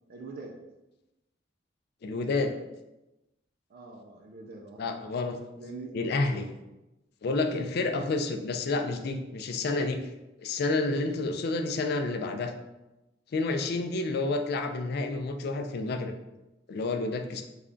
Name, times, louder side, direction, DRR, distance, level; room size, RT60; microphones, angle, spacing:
voice 1, 0.1-0.6 3.7-5.1 5.6-6.0, right 3 dB, 55° right, 1 dB, 0.4 m, -44 dB
voice 2, 2.0-2.5 4.8-5.4 5.9-6.5 7.2-10.0 10.4-12.5 13.3-16.1 16.7-17.4, left 3 dB, 60° left, 6 dB, 0.4 m, -29 dB
3.3 x 2.4 x 3.7 m, 0.99 s
head